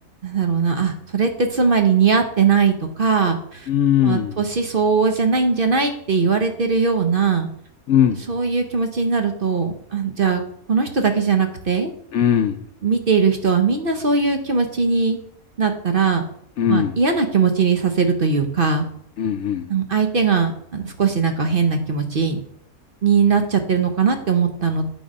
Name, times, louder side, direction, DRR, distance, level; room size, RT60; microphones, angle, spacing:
voice 1, 0.2-3.7 4.0-7.5 8.3-10.4 10.7-11.9 12.8-15.2 15.6-16.2 16.7-18.9 19.7-22.4 23.0-24.9, right 5 dB, 45° right, 6 dB, 0.9 m, -20 dB
voice 2, 3.7-4.4 7.9-8.2 12.1-12.6 16.6-17.0 19.2-19.7, left 9 dB, 65° left, 8 dB, 0.8 m, -19 dB
9.2 x 4.1 x 5.2 m, 0.66 s
omnidirectional pair, 1.5 m